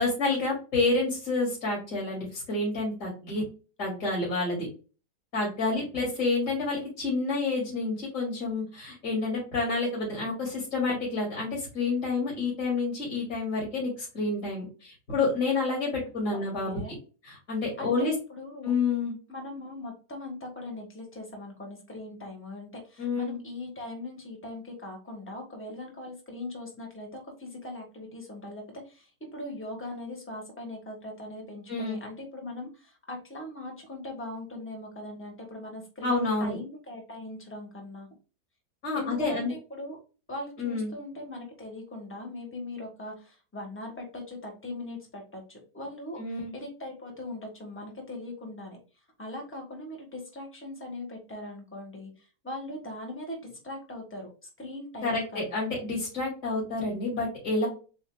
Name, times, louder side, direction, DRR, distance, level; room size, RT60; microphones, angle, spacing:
voice 1, 0.0-3.4 3.8-4.7 5.3-17.0 17.2-18.1 18.6-19.1 23.0-23.4 31.7-32.0 36.0-36.6 38.8-39.5 40.6-40.9 46.2-46.5 55.0-57.7, left 3 dB, 50° left, -3 dB, 2.7 m, -29 dB
voice 2, 16.3-17.0 17.8-18.7 19.3-38.1 38.9-40.0 40.3-48.8 49.2-54.3 54.6-55.6, left 1 dB, 10° left, 0 dB, 1.2 m, -40 dB
7.9 x 2.7 x 2.2 m, 0.35 s
omnidirectional pair, 1.8 m